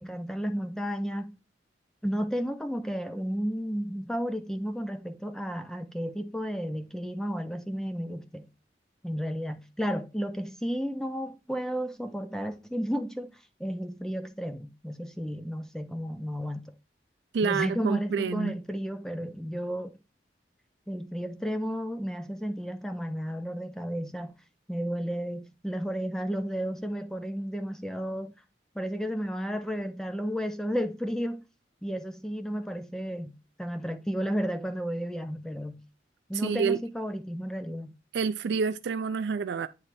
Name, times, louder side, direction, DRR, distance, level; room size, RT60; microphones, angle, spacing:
voice 1, 0.0-1.3 2.0-8.5 9.0-13.3 13.6-16.7 17.4-19.9 20.9-24.3 24.7-28.3 28.8-31.4 31.8-35.8 36.3-37.9, equal, 5° left, 0.5 m, -33 dB
voice 2, 17.3-18.6 36.3-36.8 38.1-39.7, right 5 dB, 70° right, 0.4 m, -28 dB
8.8 x 3.2 x 4.1 m
head